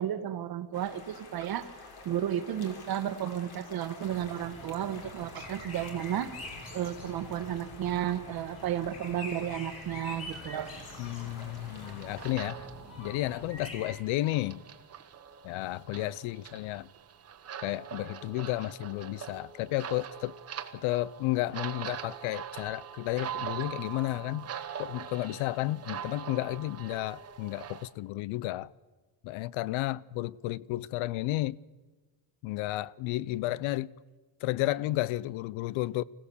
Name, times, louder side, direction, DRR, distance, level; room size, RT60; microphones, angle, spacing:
voice 1, 0.0-1.7 2.0-6.3 6.7-10.7, right 10 dB, 50° right, 1.3 m, -33 dB
sound 1, 0.7-12.3, left 3 dB, 50° left, 3.2 m, -49 dB
sound 2, 4.0-13.9, left 1 dB, 30° left, 6.6 m, -46 dB
sound 3, 10.3-27.9, right 9 dB, 30° right, 1.2 m, -43 dB
voice 2, 11.0-12.6 13.0-14.6 15.4-16.9 17.6-20.4 20.7-24.5 24.8-28.7 29.2-31.6 32.4-33.9 34.4-36.0, left 17 dB, 80° left, 0.6 m, -32 dB
25.5 x 16.0 x 7.0 m
cardioid pair, 170°, 48 cm